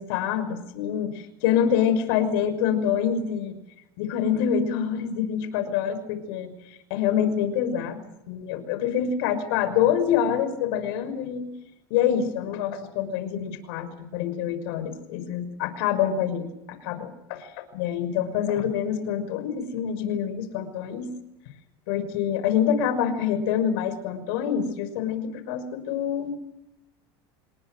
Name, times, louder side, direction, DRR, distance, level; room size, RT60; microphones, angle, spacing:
voice 1, 0.0-3.6 4.0-11.5 11.9-21.1 21.9-26.4, left 8 dB, 70° left, 10 dB, 5.9 m, -26 dB
28.5 x 21.5 x 6.5 m, 0.87 s
supercardioid pair, 135°, 12 cm